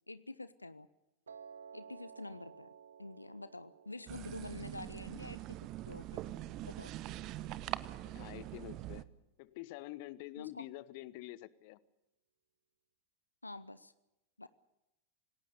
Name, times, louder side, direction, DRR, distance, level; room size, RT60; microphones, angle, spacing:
voice 1, 0.1-0.9 1.7-2.7 3.0-5.6 5.9-6.2 6.6-6.9 10.4-10.7 13.4-13.9 14.4-14.5, left 2 dB, 85° left, 15 dB, 0.7 m, -47 dB
Piano, 1.3-7.4, right 7 dB, 70° right, 1.7 m, -56 dB
sound 1, 4.1-9.0, right 14 dB, 40° right, 0.9 m, -43 dB
voice 2, 7.8-9.1 9.4-11.8, left 17 dB, 50° left, 19 dB, 1.0 m, -47 dB
27.0 x 19.0 x 6.7 m, 0.92 s
figure-of-eight pair, 90°, 0 cm